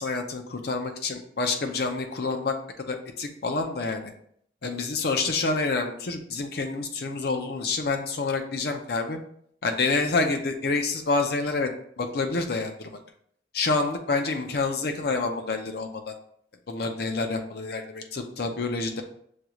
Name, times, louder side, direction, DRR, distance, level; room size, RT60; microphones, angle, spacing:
voice 1, 0.0-4.1 4.6-9.2 9.6-11.7 12.0-12.9 13.5-16.1 16.7-19.0, left 3 dB, 55° left, 4 dB, 0.5 m, -28 dB
6.4 x 2.3 x 3.0 m, 0.65 s
head